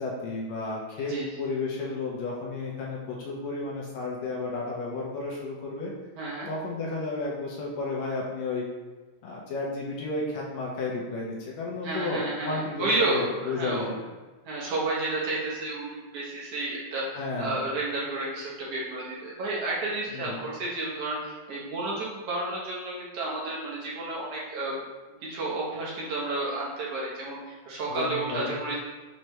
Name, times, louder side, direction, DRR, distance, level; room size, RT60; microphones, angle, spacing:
voice 1, 0.0-1.1 1.4-5.9 6.5-8.7 9.2-14.1 17.1-17.6 20.1-20.4 27.9-28.6, left 3 dB, 80° left, -3 dB, 1.9 m, -32 dB
voice 2, 1.0-1.3 6.1-6.5 11.8-13.8 14.4-24.8 25.2-28.8, right 2 dB, 70° right, -5 dB, 1.6 m, -31 dB
6.2 x 2.1 x 2.9 m, 1.3 s
omnidirectional pair, 3.3 m